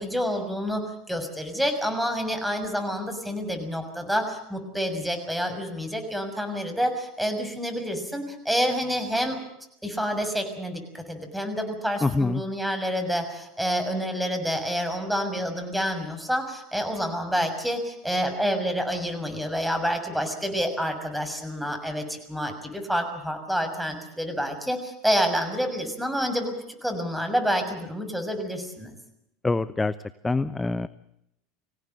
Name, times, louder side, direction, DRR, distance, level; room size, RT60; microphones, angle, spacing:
voice 1, 0.0-9.4 9.8-26.5 26.8-28.9, equal, 5° right, 6 dB, 6.3 m, -28 dB
voice 2, 12.0-12.4 29.4-29.9 30.2-30.9, left 3 dB, 15° left, 14 dB, 0.9 m, -24 dB
25.0 x 17.0 x 7.9 m, 0.79 s
hypercardioid pair, 85°, 0 cm